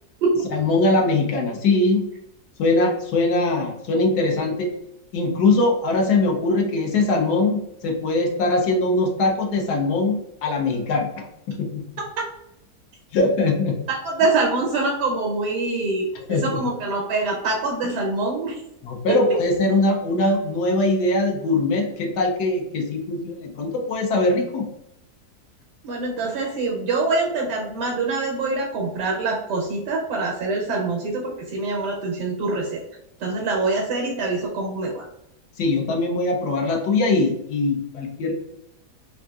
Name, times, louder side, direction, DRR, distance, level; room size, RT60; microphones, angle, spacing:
voice 1, 0.5-2.1 2.6-4.7 5.1-11.8 13.1-13.8 16.3-16.6 18.8-24.7 35.6-38.3, left 2 dB, 75° left, 1 dB, 1.2 m, -21 dB
voice 2, 13.9-16.1 16.4-18.6 25.8-32.8 33.2-35.1, right 3 dB, 90° right, -1 dB, 1.3 m, -24 dB
3.6 x 2.5 x 2.3 m, 0.78 s
omnidirectional pair, 1.8 m